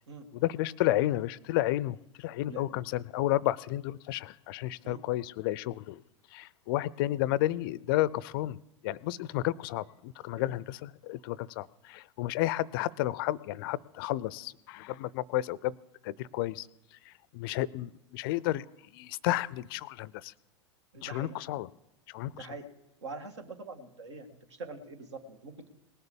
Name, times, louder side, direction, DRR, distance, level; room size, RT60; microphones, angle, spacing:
voice 1, 0.3-6.0 6.3-8.6 8.8-15.7 16.0-16.7 17.1-18.7 18.9-20.3 21.0-21.7 22.1-22.5, left 15 dB, 50° left, 21 dB, 0.5 m, -32 dB
voice 2, 2.5-2.8 4.8-5.0 10.5-10.6 20.9-21.4 22.3-22.7 23.0-25.7, right 3 dB, 70° right, 6 dB, 2.0 m, -44 dB
19.0 x 6.7 x 7.1 m, 0.90 s
figure-of-eight pair, 95°, 15 cm